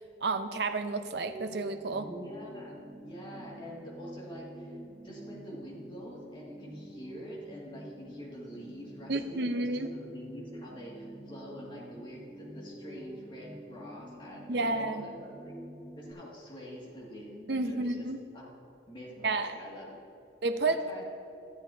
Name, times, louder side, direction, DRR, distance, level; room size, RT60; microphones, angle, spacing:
voice 1, 0.0-2.1 9.1-9.9 14.5-15.1 17.5-18.2 19.2-19.5 20.4-21.0, right 3 dB, 70° right, 8 dB, 0.6 m, -31 dB
sound 1, 1.3-16.1, right 1 dB, 15° right, 0.8 m, -47 dB
voice 2, 2.1-2.8 3.0-4.8 5.0-15.5 16.0-18.1 18.3-18.5 18.9-20.0 20.6-21.0, equal, 30° left, -5 dB, 2.1 m, -46 dB
14.0 x 8.1 x 2.7 m, 2.8 s
head